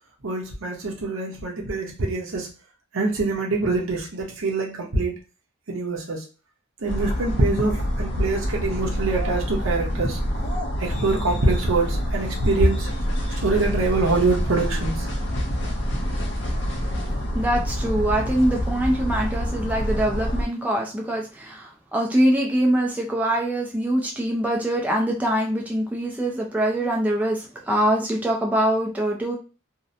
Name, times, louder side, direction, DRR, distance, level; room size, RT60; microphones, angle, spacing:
voice 1, 0.2-2.5 2.9-5.2 5.7-6.2 6.8-10.2 10.8-12.9 13.4-14.9, right 2 dB, 75° right, 0 dB, 0.7 m, -24 dB
sound 1, 6.9-20.4, equal, 55° left, 0.6 m, -27 dB
voice 2, 17.3-29.3, right 1 dB, 10° right, -1 dB, 0.3 m, -23 dB
2.7 x 2.0 x 2.5 m, 0.34 s
head